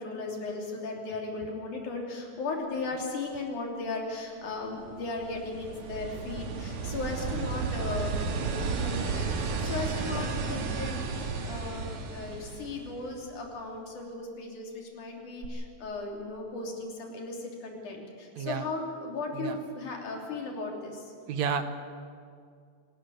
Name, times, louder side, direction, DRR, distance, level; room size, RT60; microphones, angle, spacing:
voice 1, 0.0-21.1, left 3 dB, 75° left, 0 dB, 4.6 m, -36 dB
sound 1, 4.8-13.3 15.4-15.5, right 4 dB, 85° right, 3.4 m, -33 dB
voice 2, 18.4-18.7 19.3-19.6 21.3-21.6, right 7 dB, 70° right, 9 dB, 2.2 m, -30 dB
25.5 x 13.0 x 9.3 m, 2.2 s
omnidirectional pair, 3.5 m